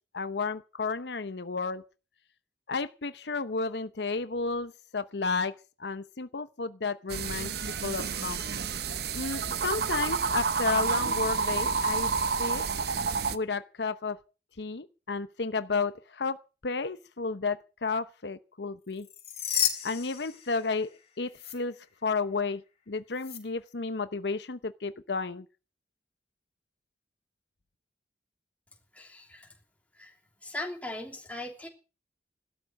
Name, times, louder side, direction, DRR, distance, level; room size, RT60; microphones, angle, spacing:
voice 1, 0.1-1.8 2.7-5.5 5.8-8.4 9.1-12.1 12.4-12.6 13.3-14.2 14.6-19.1 19.8-22.6 22.9-25.5, left 4 dB, 70° left, 0.9 m, -32 dB
sound 1, 7.1-13.4, right 5 dB, 60° right, 0.9 m, -29 dB
sound 2, 19.0-21.0 21.3-21.5 23.2-23.4, left 10 dB, 35° left, 3.7 m, -32 dB
voice 2, 28.9-29.5 29.9-30.1 30.4-31.7, left 1 dB, 10° left, 3.1 m, -39 dB
16.0 x 12.5 x 6.3 m
head